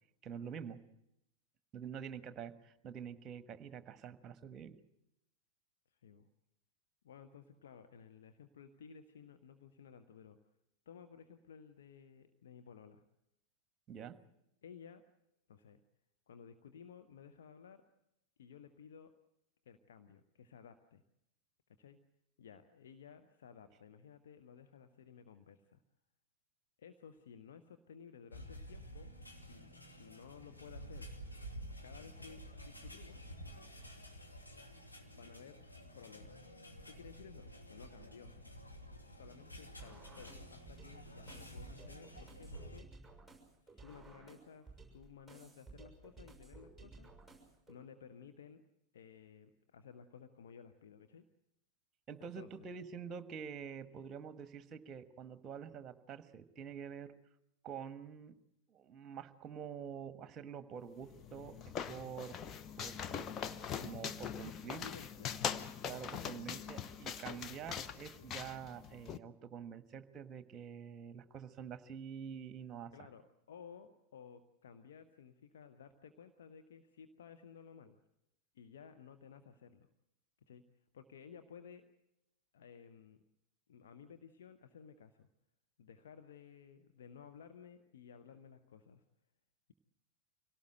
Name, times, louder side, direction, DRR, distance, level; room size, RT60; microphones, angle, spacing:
voice 1, 0.2-0.8 1.7-4.8 13.9-14.2 52.1-57.1 57.6-58.3 58.7-62.4 62.8-63.3 63.8-64.9 65.8-72.9, right 7 dB, 25° right, 11 dB, 1.4 m, -47 dB
voice 2, 5.9-6.3 7.0-10.4 10.9-13.0 14.6-15.0 15.5-15.8 16.3-17.8 18.4-19.1 19.6-21.0 21.8-22.0 22.4-25.8 26.8-29.7 30.0-31.1 31.8-33.2 35.1-35.6 35.9-36.4 36.8-38.3 39.1-43.2 43.6-47.1 47.7-48.6 48.9-51.2 52.3-52.7 64.5-65.3 66.1-66.7 67.3-67.5 72.9-78.0 78.5-79.9 80.5-80.6 80.9-81.9 82.5-83.2 83.7-85.3 85.8-89.0, left 7 dB, 60° left, 9 dB, 1.1 m, -56 dB
sound 1, 28.3-42.8, equal, 90° left, 2.5 m, -51 dB
sound 2, 39.8-47.8, right 3 dB, 5° left, 6.6 m, -56 dB
sound 3, 61.0-69.2, left 7 dB, 30° left, 0.9 m, -42 dB
25.5 x 17.5 x 7.8 m, 0.84 s
figure-of-eight pair, 90°, 0 cm